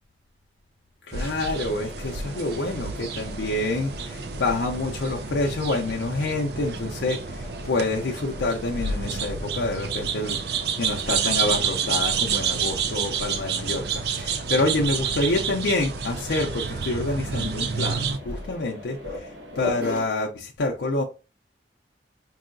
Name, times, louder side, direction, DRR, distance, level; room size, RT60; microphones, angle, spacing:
voice 1, 1.1-21.0, left 2 dB, 90° left, 0.6 m, -27 dB
sound 1, 1.1-18.2, right 6 dB, 65° right, 0.5 m, -29 dB
Mechanisms, 1.5-20.0, left 2 dB, 90° right, 1.3 m, -41 dB
4.7 x 2.7 x 2.5 m
head